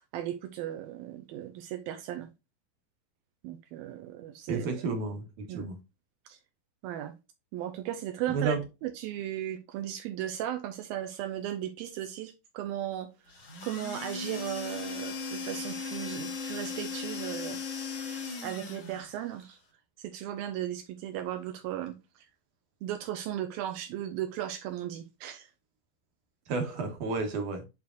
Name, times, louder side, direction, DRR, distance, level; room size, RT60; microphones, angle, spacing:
voice 1, 0.1-2.3 3.4-4.7 5.5-5.7 6.3-6.4 6.8-7.1 7.5-8.6 8.8-13.1 13.6-18.0 18.4-19.6 20.0-22.0 22.8-25.5, right 12 dB, 80° right, 2.5 m, -36 dB
voice 2, 4.5-5.8 8.3-8.6 26.5-27.7, right 4 dB, 60° right, 2.7 m, -31 dB
sound 1, 13.3-19.2, left 5 dB, 45° left, 2.4 m, -37 dB
9.5 x 4.4 x 2.5 m
omnidirectional pair, 4.4 m